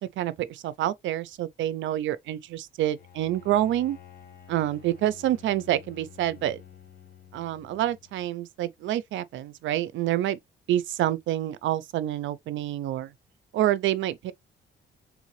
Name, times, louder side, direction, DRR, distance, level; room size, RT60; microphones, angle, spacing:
voice 1, 0.2-4.0 4.5-6.6 7.3-10.4 10.7-13.1 13.5-14.3, right 13 dB, 75° right, 0.5 m, -27 dB
Bowed string instrument, 3.0-8.3, left 9 dB, 50° left, 1.1 m, -50 dB
3.7 x 3.3 x 3.1 m
cardioid pair, 90°, 20 cm